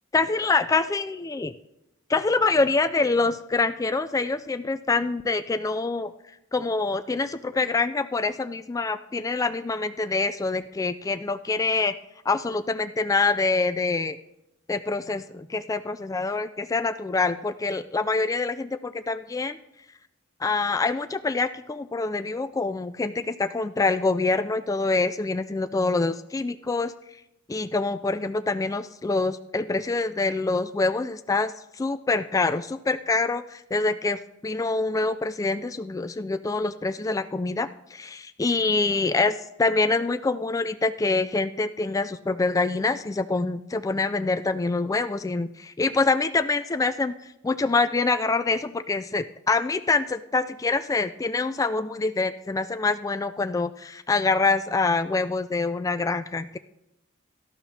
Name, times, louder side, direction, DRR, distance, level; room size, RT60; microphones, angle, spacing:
voice 1, 0.1-1.5 2.1-6.1 6.5-11.9 12.3-14.2 14.7-19.6 20.4-26.9 27.5-56.6, left 3 dB, 15° left, 10 dB, 0.3 m, -25 dB
17.5 x 12.5 x 2.8 m, 0.86 s
head